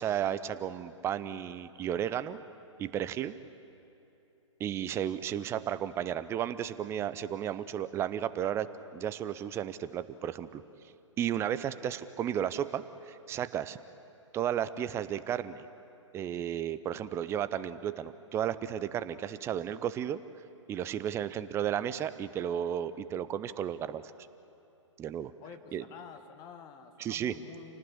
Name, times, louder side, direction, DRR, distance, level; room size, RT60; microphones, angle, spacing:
voice 1, 0.0-2.4 2.8-3.3 4.6-10.6 11.2-13.8 14.3-15.7 16.1-20.2 20.7-24.0 25.0-25.3 25.7-25.8 27.0-27.3, right 10 dB, 15° right, 14 dB, 0.7 m, -33 dB
voice 2, 25.4-27.8, left 7 dB, 25° left, 7 dB, 1.5 m, -49 dB
28.0 x 18.5 x 8.7 m, 2.9 s
figure-of-eight pair, 125°, 16 cm